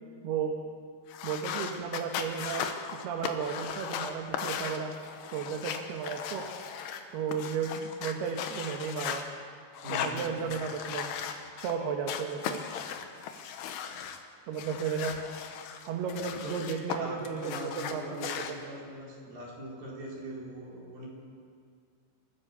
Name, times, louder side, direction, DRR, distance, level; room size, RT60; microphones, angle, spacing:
voice 1, 0.2-0.6 1.2-4.9 5.3-6.5 7.1-9.2 9.9-11.1 11.6-12.6 14.5-15.2 15.8-18.3, right 6 dB, 70° right, 2 dB, 3.0 m, -34 dB
sound 1, 1.1-9.2 9.7-11.7 12.1-14.2 14.6-17.0 17.2-18.5, left 8 dB, 75° left, 3.1 m, -37 dB
voice 2, 9.8-10.4 16.4-16.5 17.0-21.1, right 1 dB, 55° right, -4 dB, 6.0 m, -41 dB
27.0 x 15.0 x 6.8 m, 2.2 s
omnidirectional pair, 5.1 m